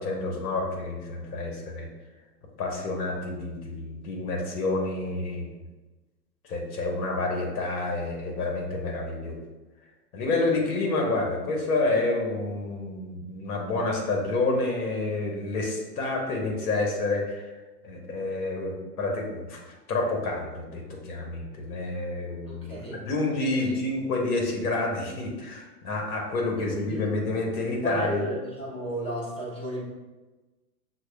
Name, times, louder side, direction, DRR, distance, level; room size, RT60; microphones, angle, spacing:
voice 1, 0.0-1.9 2.6-5.7 6.4-9.4 10.1-17.5 17.8-28.3, left 2 dB, 65° left, 1 dB, 1.4 m, -29 dB
voice 2, 22.5-23.0 23.5-23.8 26.6-27.1 27.8-29.8, right 1 dB, 10° left, -2 dB, 0.6 m, -33 dB
6.1 x 2.3 x 3.5 m, 1.2 s
hypercardioid pair, 130°, 49 cm